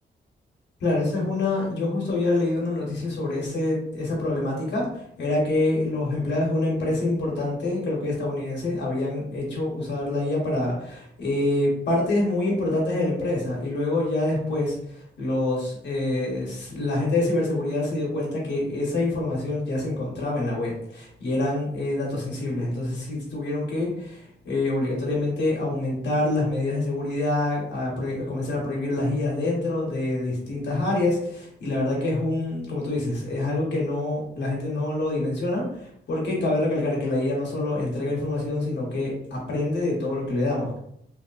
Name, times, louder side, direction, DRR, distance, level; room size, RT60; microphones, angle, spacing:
voice 1, 0.8-4.8 5.2-14.8 15.2-35.6 36.1-39.1 39.5-40.8, left 2 dB, 85° left, -3 dB, 1.1 m, -26 dB
3.1 x 2.8 x 2.4 m, 0.72 s
wide cardioid pair, 170°, 18 cm